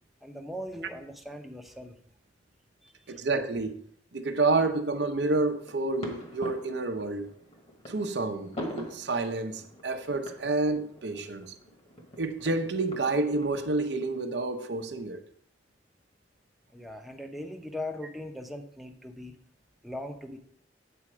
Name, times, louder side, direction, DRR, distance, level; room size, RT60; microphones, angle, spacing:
voice 1, 0.2-2.0 2.8-3.2 16.7-19.4 19.8-20.4, left 1 dB, ahead, 0.7 m, -40 dB
voice 2, 3.1-3.8 4.1-7.3 7.9-11.5 12.2-15.2, right 3 dB, 70° right, 0.7 m, -29 dB
sound 1, 5.4-14.1, equal, 35° left, 1.5 m, -44 dB
8.6 x 4.3 x 6.1 m
head